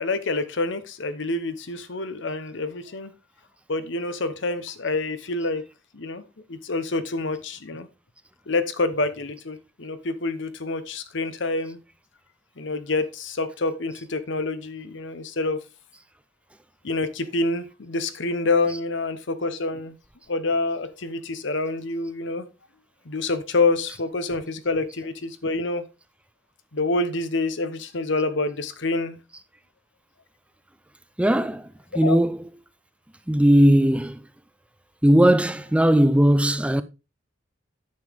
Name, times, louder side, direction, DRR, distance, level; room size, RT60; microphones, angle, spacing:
voice 1, 0.0-3.1 3.7-5.6 5.9-6.2 6.5-7.9 8.5-11.8 12.6-15.6 16.8-20.0 20.3-22.5 23.1-25.9 26.7-29.2 32.0-32.2, left 3 dB, 65° left, 1.0 m, -27 dB
voice 2, 31.2-31.6 31.9-32.5 33.3-34.2 35.0-36.8, right 1 dB, 5° right, 0.4 m, -18 dB
9.5 x 6.8 x 3.6 m
head